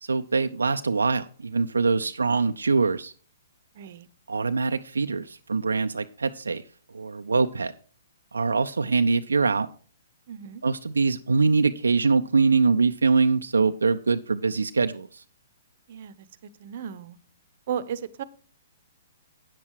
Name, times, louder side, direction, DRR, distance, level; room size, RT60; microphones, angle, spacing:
voice 1, 0.0-3.1 4.3-6.6 6.9-7.7 8.3-9.7 10.6-15.2, right 4 dB, 90° right, 7 dB, 0.5 m, -23 dB
voice 2, 3.7-4.1 10.3-10.6 15.9-16.3 16.6-17.2 17.7-18.2, right 8 dB, 55° right, 16 dB, 0.8 m, -34 dB
9.3 x 7.4 x 4.7 m, 0.40 s
hypercardioid pair, 130°, 0 cm